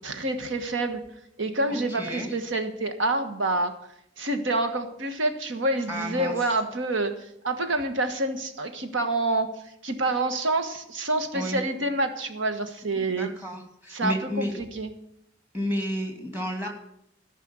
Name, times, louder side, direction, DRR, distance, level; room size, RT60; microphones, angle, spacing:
voice 1, 0.0-1.0 1.4-3.7 4.2-13.3 13.9-14.9, right 2 dB, 75° right, 7 dB, 1.4 m, -27 dB
voice 2, 1.7-2.3 5.9-6.3 11.3-11.6 13.0-14.5 15.5-16.7, equal, 10° right, 3 dB, 2.2 m, -31 dB
14.5 x 5.6 x 9.6 m, 0.75 s
head